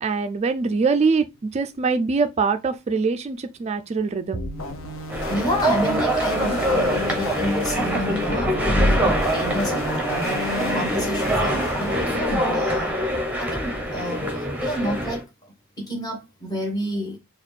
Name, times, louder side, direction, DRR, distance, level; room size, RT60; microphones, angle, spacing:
voice 1, 0.0-4.4, right 4 dB, 30° right, 0.3 m, -23 dB
sound 1, 4.3-12.4, left 3 dB, 65° left, 0.7 m, -33 dB
sound 2, 5.1-15.2, equal, 5° right, 0.8 m, -24 dB
voice 2, 5.3-12.9 13.4-17.2, equal, 20° left, 1.2 m, -30 dB
4.0 x 2.4 x 3.2 m
head